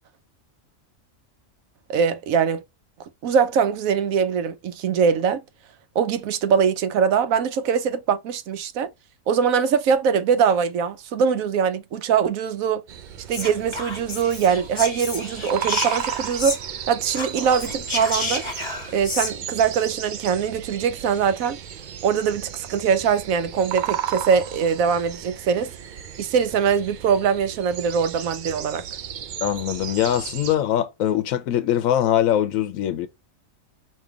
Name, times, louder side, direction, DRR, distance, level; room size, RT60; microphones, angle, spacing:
voice 1, 1.9-2.6 3.2-5.4 6.0-8.9 9.3-12.8 13.3-16.6 16.9-18.5 18.9-21.6 22.0-25.7 26.2-28.8, right 6 dB, 90° right, 1.1 m, -22 dB
sound 1, 12.9-30.6, right 9 dB, 75° right, 0.4 m, -35 dB
Whispering, 13.3-16.8 17.1-19.3, left 2 dB, 25° left, 1.0 m, -31 dB
voice 2, 29.4-33.1, left 11 dB, 85° left, 1.0 m, -22 dB
5.3 x 2.8 x 3.4 m
omnidirectional pair, 1.4 m